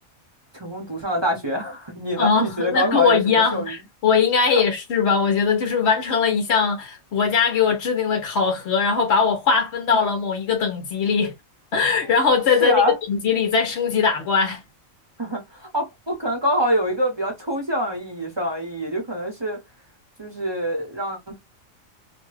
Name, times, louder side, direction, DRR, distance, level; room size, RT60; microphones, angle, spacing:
voice 1, 0.5-3.7 4.5-4.6 12.0-12.1 12.6-13.0 15.2-19.6 20.2-21.4, equal, 25° right, 0.7 m, -25 dB
voice 2, 2.2-11.3 11.7-12.8 13.1-14.6, left 5 dB, 60° left, 0.9 m, -20 dB
2.7 x 2.2 x 3.1 m
omnidirectional pair, 1.4 m